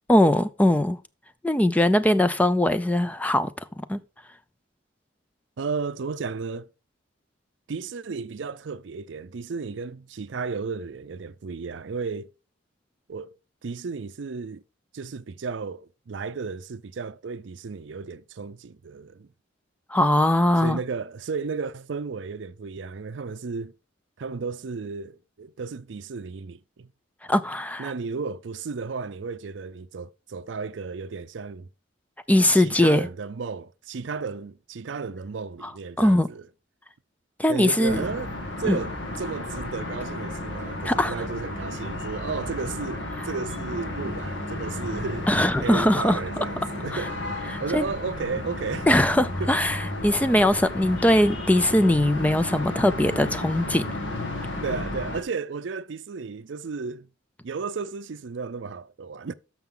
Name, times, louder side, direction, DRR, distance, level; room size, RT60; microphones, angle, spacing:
voice 1, 0.1-1.0 1.4-3.5 3.8-4.0 19.9-20.8 27.3-27.9 32.3-33.1 35.6-35.7 36.0-36.3 37.4-38.0 38.7-38.8 40.8-41.1 45.3-46.5 46.9-47.1 47.5-47.9 48.9-53.8, left 1 dB, 10° left, 0.4 m, -21 dB
voice 2, 5.6-6.7 7.7-12.3 13.1-13.3 13.6-14.6 14.9-19.3 20.6-23.7 24.2-26.9 27.8-31.7 32.6-36.4 37.5-38.3 38.6-45.3 45.6-47.2 47.6-48.9 49.4-49.5 54.6-57.1 57.4-59.3, right 4 dB, 70° right, 0.5 m, -33 dB
sound 1, 37.8-55.2, left 1 dB, 70° left, 2.1 m, -33 dB
13.0 x 5.8 x 3.8 m
head